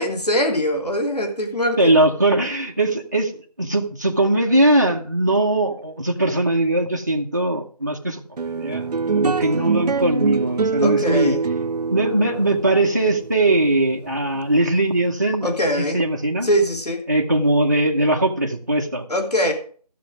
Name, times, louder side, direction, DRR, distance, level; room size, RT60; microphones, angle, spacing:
voice 1, 0.0-1.9 10.8-11.4 15.4-16.0 16.4-17.1 19.1-19.5, equal, 70° left, 3 dB, 3.1 m, -22 dB
voice 2, 1.8-8.9 9.1-11.4 11.9-15.5 15.8-16.5 17.1-19.1, right 1 dB, 25° right, 0 dB, 0.8 m, -20 dB
sound 1, 8.4-15.0, right 5 dB, 75° right, 0.4 m, -24 dB
14.5 x 6.3 x 4.9 m, 0.44 s
figure-of-eight pair, 175°, 21 cm